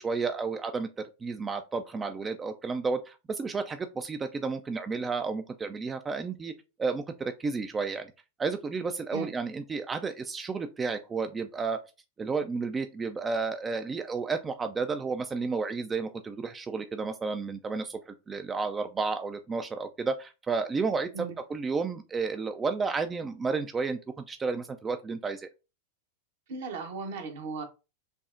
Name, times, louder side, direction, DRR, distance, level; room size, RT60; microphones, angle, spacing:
voice 1, 0.0-6.5 6.8-8.1 8.4-11.8 12.2-25.5, right 4 dB, 20° right, 0.3 m, -32 dB
voice 2, 26.5-27.6, right 4 dB, 60° right, 0.9 m, -36 dB
5.6 x 2.0 x 2.5 m
figure-of-eight pair, 90°, 0 cm